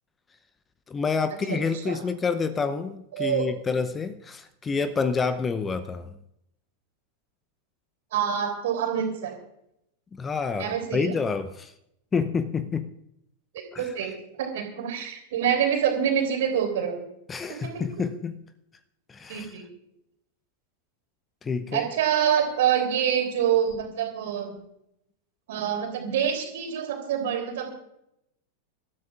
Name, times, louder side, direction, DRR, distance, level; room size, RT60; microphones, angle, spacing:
voice 1, 0.9-6.1 10.2-11.7 12.1-12.9 13.7-13.8 17.3-18.4 19.1-19.5 21.4-21.9, left 5 dB, 20° left, 0.7 m, -28 dB
voice 2, 3.1-3.4 8.1-9.4 10.6-11.1 13.5-14.1 14.4-17.0 17.5-17.8 19.3-19.7 21.7-24.5 25.5-27.7, right 9 dB, 55° right, 3.3 m, -26 dB
26.0 x 13.0 x 2.5 m
figure-of-eight pair, 90°, 0 cm